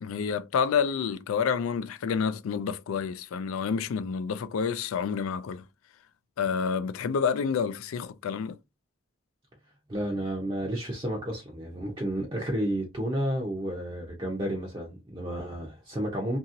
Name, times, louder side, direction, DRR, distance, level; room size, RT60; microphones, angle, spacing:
voice 1, 0.0-5.6 6.4-8.6, left 6 dB, 90° left, 0.3 m, -29 dB
voice 2, 9.9-16.4, right 1 dB, 25° right, 0.5 m, -31 dB
2.8 x 2.7 x 2.5 m
head